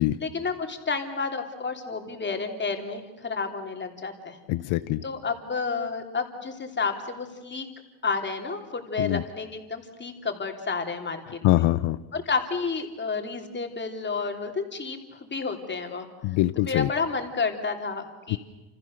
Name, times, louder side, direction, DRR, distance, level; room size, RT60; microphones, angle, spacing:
voice 1, 0.2-4.4 5.0-7.7 8.0-11.6 12.1-16.1 16.5-18.4, left 4 dB, 25° left, 4 dB, 3.3 m, -31 dB
voice 2, 4.5-5.0 9.0-9.2 11.4-12.0 16.2-16.9 18.3-18.4, left 17 dB, 85° left, 13 dB, 1.0 m, -23 dB
29.5 x 28.5 x 6.7 m, 1.1 s
cardioid pair, 145°, 47 cm